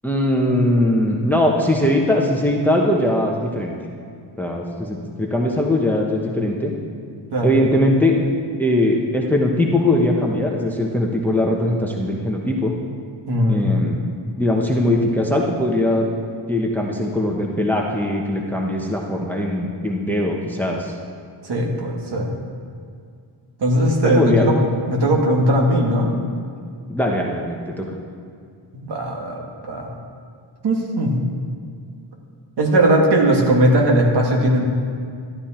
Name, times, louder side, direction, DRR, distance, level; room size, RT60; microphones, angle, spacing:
voice 1, 0.0-3.7 4.4-6.7 7.4-8.2 8.6-12.7 13.5-14.0 14.4-16.0 16.5-20.9 24.2-24.4 26.9-27.9, left 1 dB, 5° left, 0 dB, 0.9 m, -20 dB
voice 2, 13.3-13.7 21.4-22.4 23.6-24.5 24.9-26.1 28.7-29.4 29.6-29.9 30.6-31.2 32.6-34.7, right 1 dB, 55° right, -1 dB, 2.1 m, -18 dB
12.5 x 12.0 x 4.4 m, 2.3 s
wide cardioid pair, 160°, 49 cm